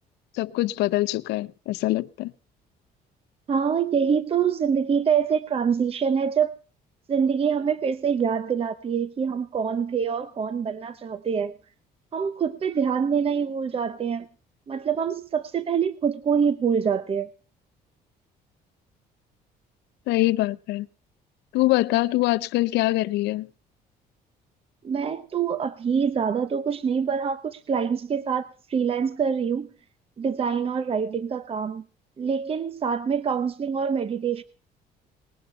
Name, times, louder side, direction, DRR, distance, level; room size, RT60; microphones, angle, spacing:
voice 1, 0.3-2.3 20.1-20.9 21.5-23.5, left 18 dB, 85° left, 0.7 m, -24 dB
voice 2, 3.5-6.5 7.1-11.5 12.1-14.3 14.7-17.3 24.8-29.7 30.2-31.8 32.2-34.4, right 7 dB, 35° right, 0.8 m, -25 dB
19.5 x 11.0 x 5.5 m
cardioid pair, 110°, 17 cm